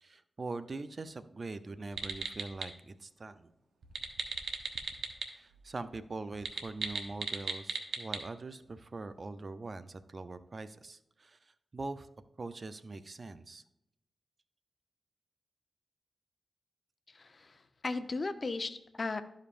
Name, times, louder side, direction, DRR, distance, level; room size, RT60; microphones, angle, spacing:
voice 1, 0.0-3.5 5.3-12.1 12.4-13.6, right 3 dB, 55° right, 12 dB, 0.5 m, -43 dB
sound 1, 1.9-2.7 3.8-5.3 5.5-5.6 6.3-8.2, right 5 dB, 85° right, 0.8 m, -37 dB
voice 2, 17.1-19.2, left 3 dB, 50° left, 10 dB, 0.7 m, -37 dB
12.5 x 5.2 x 2.5 m, 0.85 s
cardioid pair, 40°, 0 cm